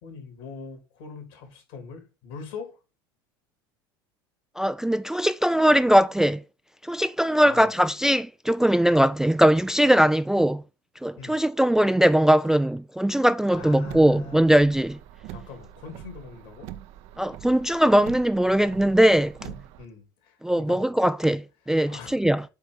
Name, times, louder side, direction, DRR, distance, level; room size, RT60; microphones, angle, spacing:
voice 1, 0.0-2.8 7.4-7.7 11.2-11.4 13.5-14.5 15.3-16.7 19.4-20.8 21.9-22.1, left 4 dB, 70° left, 3.5 m, -41 dB
voice 2, 4.6-6.4 6.8-10.6 11.0-15.0 17.2-19.3 20.4-22.4, right 1 dB, 5° right, 0.3 m, -20 dB
Car, 13.5-19.9, right 12 dB, 60° right, 0.8 m, -44 dB
8.2 x 3.5 x 6.6 m
hypercardioid pair, 80°, 12 cm